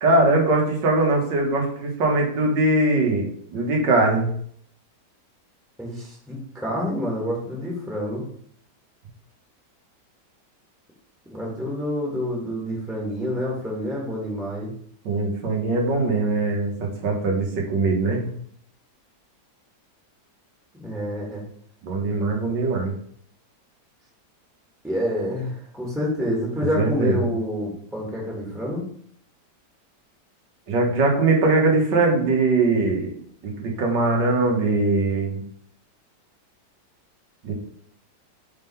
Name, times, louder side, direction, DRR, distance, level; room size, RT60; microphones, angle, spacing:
voice 1, 0.0-3.2 3.5-4.3 15.1-18.3 21.8-22.9 26.8-27.3 30.7-33.1 33.4-35.4 37.4-37.5, right 2 dB, 85° right, 0 dB, 1.9 m, -21 dB
voice 2, 5.8-8.3 11.3-14.7 18.1-18.4 20.8-21.4 24.8-28.8, equal, ahead, -3 dB, 1.4 m, -28 dB
4.9 x 3.7 x 5.6 m, 0.63 s
omnidirectional pair, 1.9 m